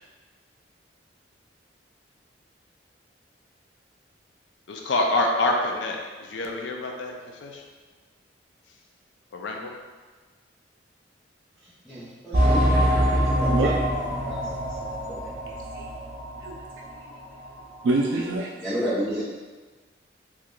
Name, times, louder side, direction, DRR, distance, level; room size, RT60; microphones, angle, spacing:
voice 1, 4.7-7.6 9.3-9.7, left 2 dB, 75° left, 1 dB, 0.4 m, -27 dB
voice 2, 11.9-12.6 12.9-13.0 13.4-13.5 14.2-14.3 15.1-15.3 18.6-19.2, equal, ahead, -12 dB, 0.6 m, -30 dB
sound 1, 12.3-16.6 16.9-17.0 17.6-17.7, equal, 40° right, 0.6 m, -24 dB
voice 3, 16.4-17.2 17.8-18.5 19.1-19.2, right 2 dB, 85° right, -2 dB, 0.4 m, -27 dB
3.0 x 2.2 x 3.7 m, 1.3 s
head